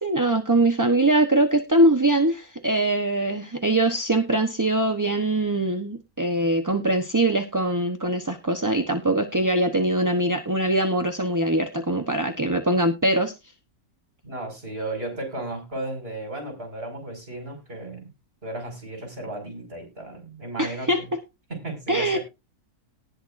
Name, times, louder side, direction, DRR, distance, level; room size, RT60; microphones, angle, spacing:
voice 1, 0.0-13.3 20.6-21.2 21.9-22.2, right 1 dB, 15° right, 6 dB, 0.8 m, -22 dB
voice 2, 14.2-18.1 18.4-21.1 21.5-22.2, right 2 dB, 40° right, 4 dB, 5.8 m, -34 dB
19.0 x 6.8 x 2.6 m, 0.25 s
omnidirectional pair, 1.6 m